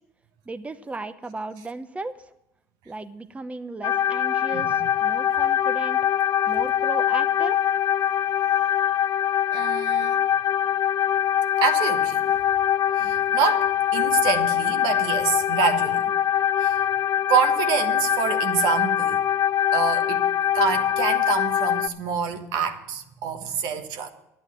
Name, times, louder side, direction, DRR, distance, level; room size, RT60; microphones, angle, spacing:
voice 1, 0.5-2.2 2.9-6.0 6.5-7.6, right 2 dB, 15° right, 0.7 m, -35 dB
sound 1, 3.8-21.9, left 10 dB, 50° left, 0.5 m, -23 dB
voice 2, 4.5-4.9 9.5-10.2 11.6-12.4 13.0-16.0 16.6-16.7 17.3-19.2 19.7-20.3 20.5-24.1, right 7 dB, 75° right, 1.3 m, -26 dB
11.0 x 9.0 x 7.5 m
supercardioid pair, 75°, 7 cm